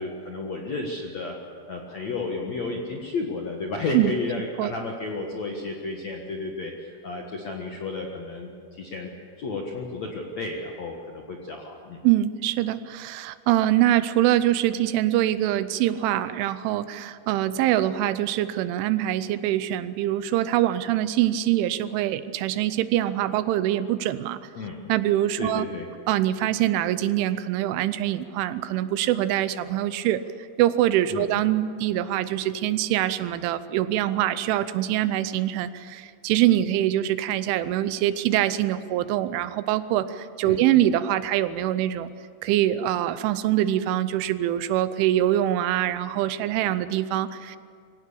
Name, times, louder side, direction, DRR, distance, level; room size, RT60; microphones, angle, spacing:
voice 1, 0.0-1.4 1.7-9.1 9.4-12.0 24.6-24.8 25.4-25.9 31.1-31.3 40.4-40.6, left 3 dB, 60° left, 0 dB, 1.8 m, -32 dB
voice 2, 12.0-24.4 24.9-25.7 26.1-30.2 30.6-42.1 42.4-47.6, right 13 dB, 80° right, 13 dB, 3.1 m, -24 dB
24.0 x 17.0 x 8.6 m, 2.1 s
omnidirectional pair, 5.6 m